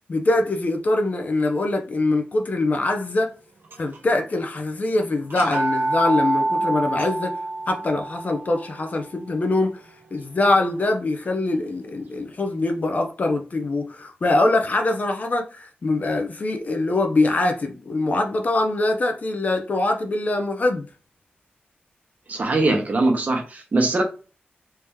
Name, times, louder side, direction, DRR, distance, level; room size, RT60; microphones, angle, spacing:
voice 1, 0.1-3.3 3.8-7.4 7.7-9.8 10.1-20.9, left 2 dB, 45° left, 0.6 m, -23 dB
sound 1, 3.6-4.2 4.6-4.7 5.2-11.1, right 2 dB, 65° right, 0.9 m, -28 dB
voice 2, 22.3-24.0, right 2 dB, 45° right, 1.1 m, -21 dB
3.4 x 2.9 x 3.4 m
wide cardioid pair, 125°, 4 cm